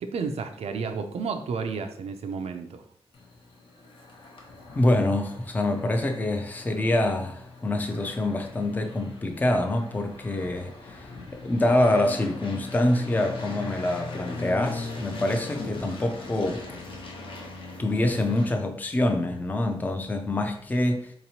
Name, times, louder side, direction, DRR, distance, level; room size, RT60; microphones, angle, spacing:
voice 1, 0.0-2.8, right 5 dB, 90° right, 7 dB, 0.4 m, -31 dB
sound 1, 3.1-18.5, left 3 dB, 60° left, 0.8 m, -40 dB
voice 2, 4.8-11.0 11.4-16.6 17.8-21.1, left 1 dB, 15° left, 5 dB, 0.4 m, -25 dB
4.0 x 2.9 x 2.7 m, 0.63 s
wide cardioid pair, 140°, 10 cm